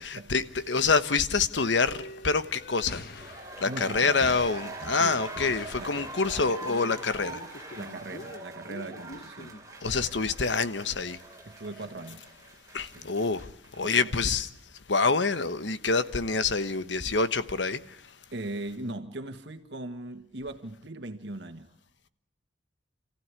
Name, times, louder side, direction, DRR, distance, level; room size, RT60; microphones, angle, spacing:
voice 1, 0.0-3.2 3.6-7.4 9.8-11.2 12.7-13.5 13.8-14.5 14.9-18.0, left 4 dB, 80° left, 1.2 m, -26 dB
sound 1, 1.5-10.0 10.9-11.0 11.3-11.4 11.7-11.8 12.3-12.4 13.9-14.0, left 2 dB, 55° left, 1.5 m, -45 dB
sound 2, 3.0-13.8 14.1-14.2, right 2 dB, 20° right, 3.0 m, -43 dB
voice 2, 3.7-4.2 4.9-5.2 5.8-6.1 7.8-9.6 11.4-12.2 12.8-13.1 13.8-14.2 18.3-21.7, right 2 dB, 70° right, 1.6 m, -39 dB
28.5 x 15.5 x 9.7 m
head